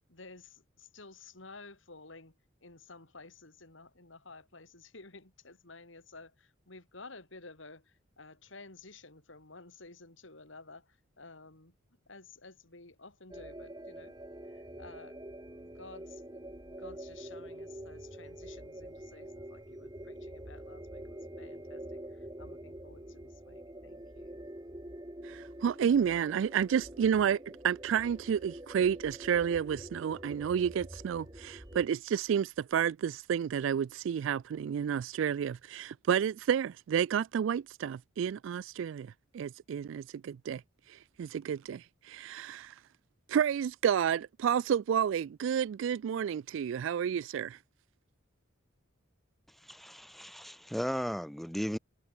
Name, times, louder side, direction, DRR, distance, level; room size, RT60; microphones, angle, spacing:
voice 1, 0.1-2.4 2.6-11.7 12.1-14.1 14.4-15.2 15.6-24.4, left 3 dB, 70° left, 3.4 m, -53 dB
sound 1, 13.3-31.9, right 1 dB, 20° right, 1.9 m, -46 dB
voice 2, 25.2-40.6 40.9-42.8 43.3-47.6, right 8 dB, 70° right, 0.3 m, -30 dB
voice 3, 49.6-51.8, equal, ahead, 0.6 m, -36 dB
head